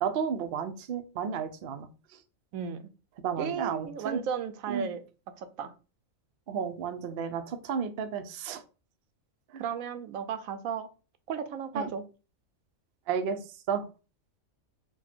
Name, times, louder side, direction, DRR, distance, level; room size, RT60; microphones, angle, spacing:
voice 1, 0.0-1.9 3.2-4.2 4.7-4.9 6.5-8.6 9.5-9.6 11.7-11.9 13.1-13.4 13.7-13.9, right 7 dB, 60° right, 8 dB, 0.6 m, -32 dB
voice 2, 2.5-2.9 3.4-5.0 5.4-5.7 9.6-10.9 11.3-12.0, right 7 dB, 80° right, 9 dB, 1.0 m, -34 dB
4.6 x 2.3 x 4.2 m, 0.34 s
omnidirectional pair, 1.4 m